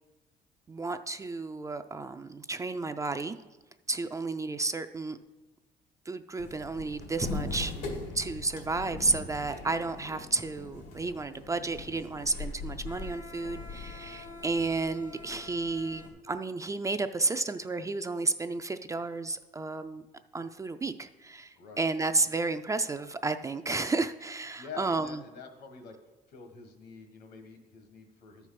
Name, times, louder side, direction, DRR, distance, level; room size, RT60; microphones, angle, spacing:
voice 1, 0.7-3.4 3.9-5.2 6.1-20.0 20.3-25.2, right 3 dB, 20° right, 9 dB, 0.3 m, -32 dB
sound 1, 6.4-16.1, left 3 dB, 85° left, 2.1 m, -41 dB
voice 2, 24.5-26.0 26.3-28.5, left 6 dB, 70° left, 6 dB, 1.6 m, -47 dB
12.5 x 4.6 x 5.9 m, 1.1 s
cardioid pair, 110°, 17 cm